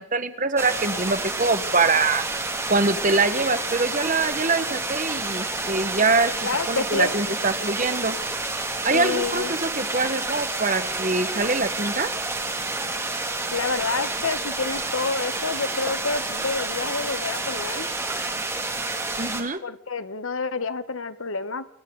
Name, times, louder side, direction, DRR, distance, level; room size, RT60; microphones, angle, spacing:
voice 1, 0.0-2.2 2.7-8.2 8.8-12.1 19.2-19.6, right 3 dB, 35° right, 11 dB, 1.4 m, -24 dB
sound 1, 0.6-19.4, right 2 dB, 10° right, 2.4 m, -29 dB
voice 2, 6.4-7.1 8.9-9.5 13.5-17.9 19.6-21.7, left 4 dB, 75° left, 13 dB, 1.1 m, -28 dB
29.5 x 22.5 x 4.0 m, 0.65 s
head